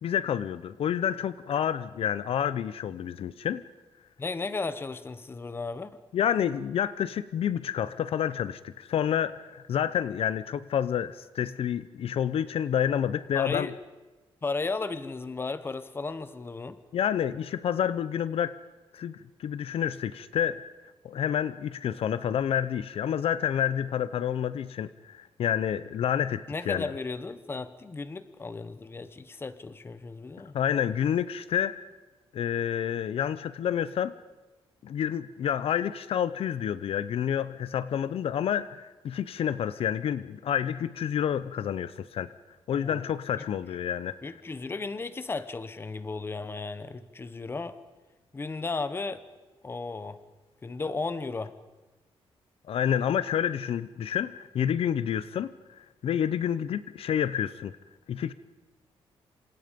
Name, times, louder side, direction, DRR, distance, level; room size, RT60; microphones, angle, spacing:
voice 1, 0.0-3.6 6.1-13.7 16.9-18.6 18.9-20.6 21.0-26.9 30.5-31.8 32.3-34.1 34.8-42.3 42.7-44.2 52.7-57.7 58.1-58.3, left 9 dB, 65° left, 0.8 m, -29 dB
voice 2, 4.2-6.0 13.3-13.7 14.4-16.8 26.5-30.5 42.8-43.0 43.4-43.5 44.2-47.8 48.3-49.2 49.6-50.2 50.6-51.6, left 3 dB, 20° left, 1.1 m, -35 dB
27.5 x 26.5 x 5.3 m
wide cardioid pair, 160°, 10 cm